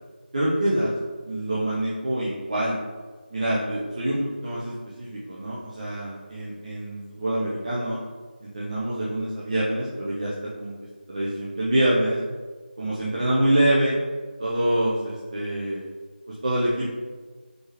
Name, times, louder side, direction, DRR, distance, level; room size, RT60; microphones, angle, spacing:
voice 1, 0.3-0.9 1.2-2.8 3.3-8.0 8.4-10.7 11.1-12.2 12.8-14.0 14.4-15.8 16.3-16.9, right 1 dB, 40° right, -7 dB, 0.7 m, -25 dB
4.3 x 3.3 x 3.0 m, 1.4 s
figure-of-eight pair, 170°, 6 cm